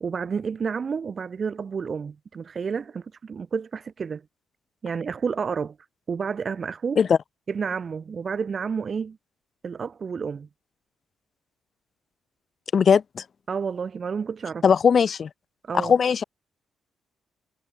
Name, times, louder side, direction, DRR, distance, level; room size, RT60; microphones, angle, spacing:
voice 1, 0.0-4.2 4.8-5.8 6.1-7.0 7.5-9.2 9.6-10.5 13.5-14.6 15.7-15.9, right 6 dB, 50° right, 0.5 m, -30 dB
voice 2, 12.7-13.2 14.6-15.3 15.7-16.2, left 6 dB, 55° left, 0.3 m, -19 dB
hypercardioid pair, 50°, 0 cm